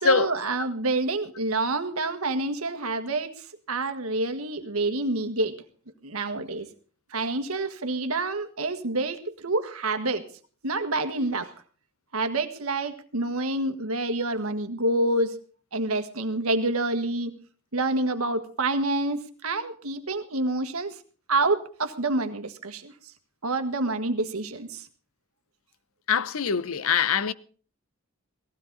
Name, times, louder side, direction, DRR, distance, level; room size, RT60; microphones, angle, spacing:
voice 1, 0.0-5.6 6.0-6.7 7.1-10.2 10.6-11.5 12.1-15.4 15.7-17.3 17.7-21.0 21.3-22.9 23.4-24.9, right 2 dB, 85° right, 1.6 m, -27 dB
voice 2, 26.1-27.3, left 6 dB, 75° left, 0.7 m, -23 dB
17.5 x 15.5 x 4.0 m
head